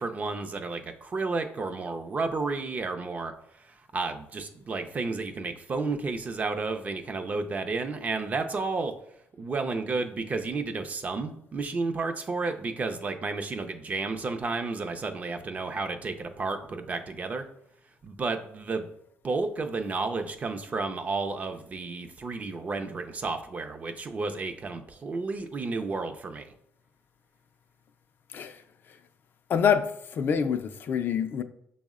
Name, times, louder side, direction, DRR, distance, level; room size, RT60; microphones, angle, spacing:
voice 1, 0.0-8.9 9.4-17.5 18.0-18.9 19.2-26.5, right 3 dB, 35° right, 0.5 m, -32 dB
voice 2, 29.5-31.4, left 7 dB, 50° left, 0.3 m, -26 dB
6.2 x 2.1 x 3.6 m
cardioid pair, 125°, 5 cm